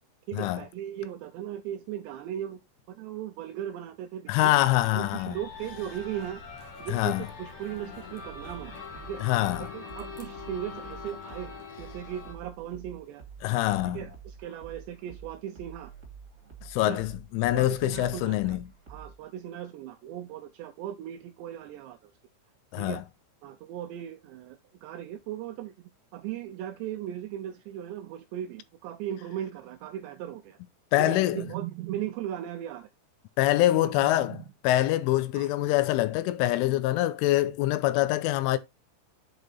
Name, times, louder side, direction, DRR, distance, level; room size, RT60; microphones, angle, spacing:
voice 1, 0.3-2.6 2.9-4.5 4.9-9.2 9.6-13.2 13.8-15.9 16.8-17.0 17.5-18.6 18.9-22.1 22.8-23.0 23.4-25.7 26.1-30.6 31.0-32.9 33.8-34.5 35.3-35.5, right 11 dB, 85° right, 2.5 m, -38 dB
voice 2, 4.3-5.4 6.9-7.3 9.2-9.7 13.4-14.1 16.7-18.6 22.7-23.0 30.9-31.5 33.4-38.6, left 15 dB, 85° left, 3.1 m, -25 dB
sound 1, 4.6-12.3, left 5 dB, 55° left, 2.1 m, -43 dB
sound 2, 8.3-19.3, right 6 dB, 35° right, 1.7 m, -48 dB
8.1 x 5.1 x 4.0 m
omnidirectional pair, 5.7 m